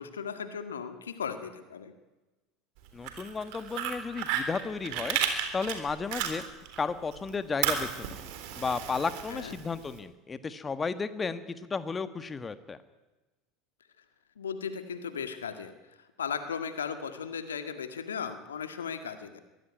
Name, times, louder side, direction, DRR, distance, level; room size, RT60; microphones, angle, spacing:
voice 1, 0.0-1.9 9.3-9.6 14.4-19.4, left 6 dB, 80° left, 9 dB, 1.9 m, -37 dB
voice 2, 2.9-5.2 5.5-6.4 6.8-8.2 8.6-12.8, left 5 dB, 20° left, 12 dB, 1.6 m, -33 dB
Fire, 2.9-6.8 7.1-9.9, right 9 dB, 60° right, 3.6 m, -33 dB
23.0 x 16.5 x 9.5 m, 1.1 s
figure-of-eight pair, 75°, 0 cm